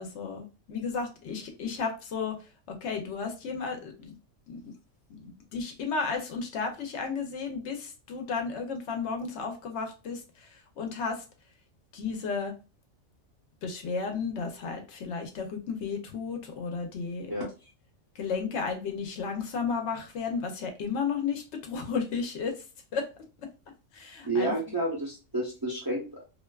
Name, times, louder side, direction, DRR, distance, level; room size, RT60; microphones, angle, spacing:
voice 1, 0.0-4.1 4.5-4.7 5.2-11.2 11.9-12.5 13.6-17.3 18.1-22.6 22.9-23.1 23.9-24.5, left 5 dB, 75° left, 4 dB, 0.9 m, -33 dB
voice 2, 24.2-26.2, right 2 dB, 25° right, -3 dB, 0.5 m, -30 dB
2.5 x 2.2 x 2.2 m, 0.31 s
omnidirectional pair, 1.2 m